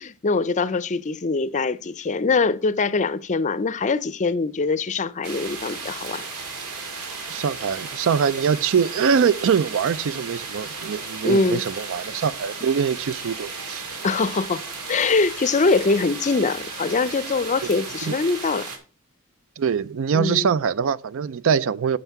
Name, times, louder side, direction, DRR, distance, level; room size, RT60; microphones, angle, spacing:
voice 1, 0.0-6.2 11.2-11.6 14.0-14.6 14.9-18.7 20.1-20.5, left 4 dB, 35° left, 0.5 m, -23 dB
sound 1, 5.2-18.8, right 4 dB, 80° right, 2.1 m, -35 dB
voice 2, 7.3-13.8 18.1-18.2 19.6-22.0, right 6 dB, 60° right, 0.4 m, -23 dB
9.2 x 6.6 x 4.6 m
head